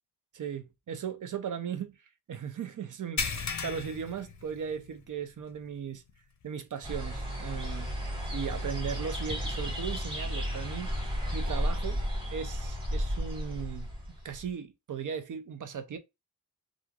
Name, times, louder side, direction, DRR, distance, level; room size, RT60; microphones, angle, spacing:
voice 1, 0.3-2.0 2.3-6.0 6.4-7.9 8.3-11.0 11.3-12.0 12.3-13.9 14.2-16.0, right 7 dB, 55° right, 0.5 m, -37 dB
sound 1, 3.2-5.1 5.4-5.6 6.1-6.2 7.8-7.9, left 5 dB, 50° left, 0.5 m, -35 dB
sound 2, 6.8-14.5, equal, 15° right, 1.4 m, -33 dB
3.0 x 2.5 x 2.3 m
wide cardioid pair, 115°, 37 cm